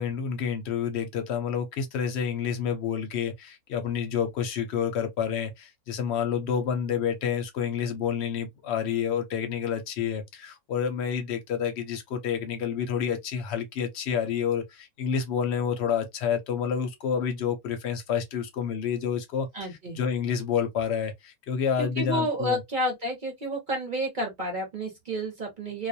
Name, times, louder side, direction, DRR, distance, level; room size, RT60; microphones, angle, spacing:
voice 1, 0.0-19.5 19.9-22.6, left 7 dB, 60° left, 0.7 m, -29 dB
voice 2, 19.5-20.0 21.8-25.9, equal, 40° right, 0.8 m, -30 dB
2.4 x 2.2 x 2.6 m
omnidirectional pair, 1.6 m